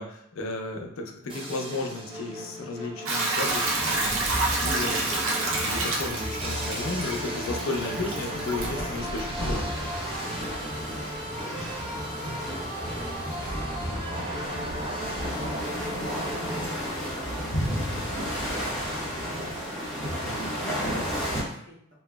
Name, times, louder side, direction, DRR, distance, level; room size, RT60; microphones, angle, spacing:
voice 1, 0.0-9.7 17.9-18.1, left 3 dB, 75° left, 2 dB, 0.5 m, -34 dB
sound 1, 1.3-16.7, equal, 25° right, 0.5 m, -36 dB
Hiss / Toilet flush / Trickle dribble, 3.1-13.3, right 2 dB, 80° right, 0.6 m, -31 dB
sound 2, 3.4-21.4, equal, ahead, 0.8 m, -33 dB
voice 2, 10.2-22.0, equal, 55° right, -5 dB, 1.0 m, -50 dB
2.9 x 2.7 x 2.2 m, 0.68 s
head